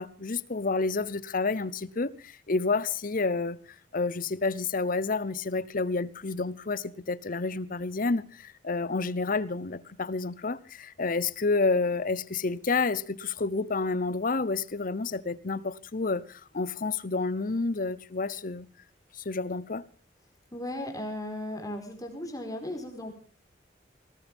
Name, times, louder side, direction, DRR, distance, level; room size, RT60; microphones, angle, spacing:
voice 1, 0.0-3.6 3.9-18.7 19.2-19.8, left 3 dB, 50° left, 0.8 m, -29 dB
voice 2, 20.5-23.1, left 1 dB, 20° left, 4.6 m, -36 dB
19.5 x 18.5 x 3.6 m
head